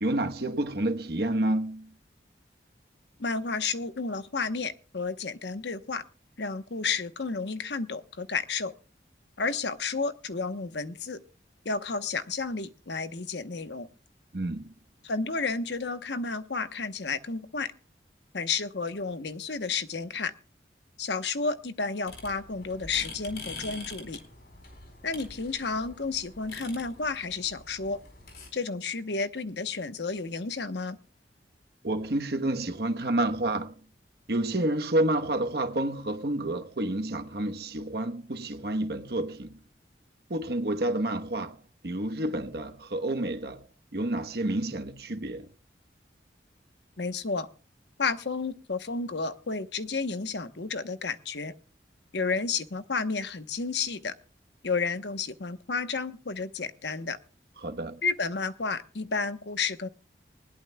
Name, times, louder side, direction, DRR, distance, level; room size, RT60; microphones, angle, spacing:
voice 1, 0.0-1.9 14.3-14.7 31.8-33.7 34.3-39.6 40.3-41.6 41.8-43.6 43.9-45.5 57.6-58.0, right 1 dB, 65° right, 1.1 m, -29 dB
voice 2, 3.2-6.0 6.4-8.7 9.4-11.2 11.6-13.9 15.0-17.7 18.3-20.3 21.0-24.2 25.0-28.0 28.5-31.0 47.0-47.5 48.0-51.5 52.1-54.1 54.6-57.2 58.0-59.9, left 4 dB, 80° left, 1.0 m, -31 dB
sound 1, 22.1-28.5, left 3 dB, 60° left, 4.1 m, -45 dB
20.0 x 17.5 x 2.3 m
head